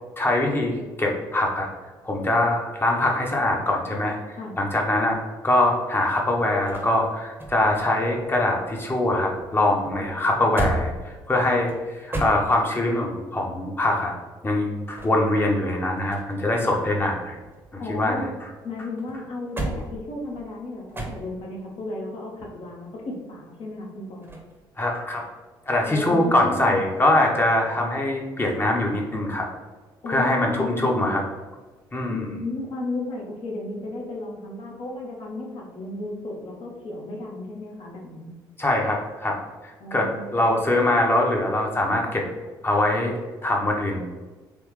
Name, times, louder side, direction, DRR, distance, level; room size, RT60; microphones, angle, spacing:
voice 1, 0.2-1.7 2.0-4.2 4.6-5.2 5.4-14.1 14.4-17.4 17.7-18.2 24.8-25.3 25.7-29.5 30.1-31.2 31.9-32.2 38.6-39.4 39.9-42.2 42.6-43.1 43.4-44.0, left 1 dB, 20° left, 0 dB, 0.9 m, -23 dB
sound 1, 6.0-9.1 9.3-13.0 14.7-16.5 16.8-18.5 19.0-21.6 24.2-24.6, right 1 dB, 20° right, 0.9 m, -35 dB
voice 2, 17.8-18.3 18.6-24.3 25.9-26.8 30.0-31.1 32.1-38.4 39.8-40.6, left 2 dB, 50° left, -2 dB, 1.1 m, -34 dB
3.5 x 3.2 x 3.1 m, 1.3 s
figure-of-eight pair, 45°, 11 cm